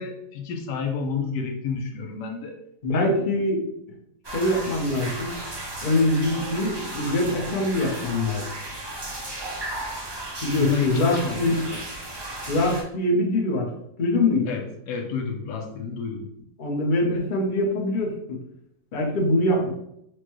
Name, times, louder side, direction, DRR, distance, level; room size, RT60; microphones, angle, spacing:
voice 1, 0.0-2.6 2.9-3.1 10.6-11.8 14.4-16.3, left 5 dB, 85° left, 3 dB, 1.2 m, -30 dB
voice 2, 2.8-3.8 4.3-5.4 5.8-8.5 10.4-11.6 12.5-13.7 14.0-14.5 16.6-18.1 18.9-19.7, left 1 dB, 40° left, -1 dB, 0.8 m, -23 dB
sound 1, 4.2-12.8, right 1 dB, 35° right, 0.4 m, -35 dB
6.1 x 2.2 x 3.0 m, 0.78 s
omnidirectional pair, 1.8 m